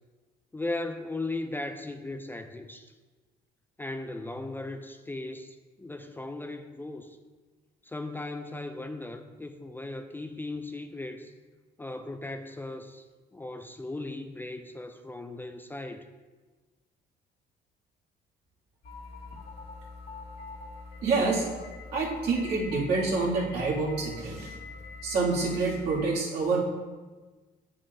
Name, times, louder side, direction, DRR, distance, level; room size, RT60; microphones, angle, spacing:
voice 1, 0.5-2.9 3.8-7.2 7.8-11.3 11.8-16.0, left 2 dB, 10° left, 7 dB, 0.4 m, -37 dB
sound 1, 18.8-26.1, left 3 dB, 60° left, 2.0 m, -44 dB
voice 2, 21.0-21.5 21.9-24.5 25.0-26.7, right 3 dB, 75° right, -5 dB, 2.3 m, -27 dB
8.6 x 7.1 x 2.6 m, 1.3 s
cardioid pair, 110°, 17 cm